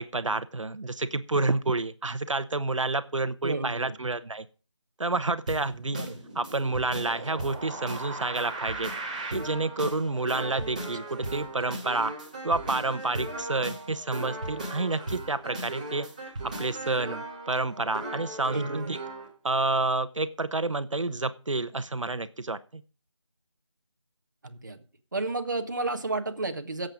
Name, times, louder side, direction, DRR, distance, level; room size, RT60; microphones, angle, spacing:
voice 1, 0.0-4.4 5.0-6.0 6.4-8.9 9.3-12.1 12.4-16.1 16.6-19.0 19.4-22.8, right 3 dB, 85° right, 12 dB, 1.0 m, -29 dB
voice 2, 3.4-4.0 5.9-6.2 18.5-19.0 24.4-24.8 25.1-26.9, right 2 dB, 40° right, 6 dB, 1.3 m, -31 dB
sound 1, 5.5-19.3, right 2 dB, 15° right, 1.5 m, -37 dB
16.0 x 7.8 x 5.0 m, 0.37 s
figure-of-eight pair, 175°, 16 cm